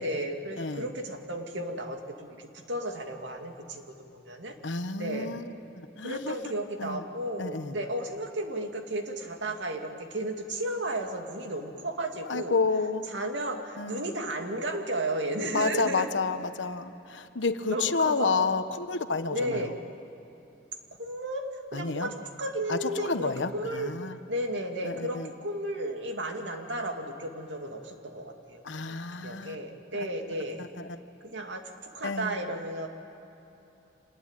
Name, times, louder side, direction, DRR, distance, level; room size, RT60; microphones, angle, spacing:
voice 1, 0.0-4.6 5.0-5.3 6.0-12.6 13.1-16.1 17.7-18.5 19.3-19.7 21.0-23.9 24.3-30.6 31.2-32.9, right 1 dB, 80° right, 4 dB, 2.5 m, -34 dB
voice 2, 0.6-0.9 4.6-5.5 5.7-6.3 6.8-7.0 7.4-7.8 12.3-13.1 13.8-14.1 15.5-19.7 21.7-22.1 22.7-24.2 24.8-25.3 28.6-29.6 30.6-31.0 32.0-32.4, left 4 dB, 85° left, 10 dB, 1.1 m, -30 dB
26.0 x 20.5 x 9.0 m, 2.9 s
head